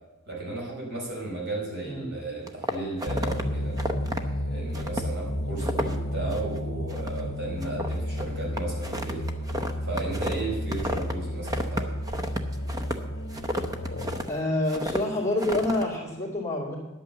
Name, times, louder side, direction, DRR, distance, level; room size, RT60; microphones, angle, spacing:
voice 1, 0.3-3.8 4.5-9.2 9.8-11.9, right 2 dB, 60° right, -2 dB, 4.6 m, -34 dB
sound 1, 2.5-3.4 3.8-4.2 4.7-5.1 5.4-6.0 6.3-6.6 6.9-7.3 7.6-11.1 11.4-14.3 14.7-15.0 15.4-15.8, equal, 20° right, 0.7 m, -32 dB
sound 2, 3.1-14.3, equal, 60° left, 0.9 m, -32 dB
voice 2, 14.3-16.8, left 2 dB, 15° left, -3 dB, 2.5 m, -27 dB
10.5 x 8.5 x 6.8 m, 1.1 s
head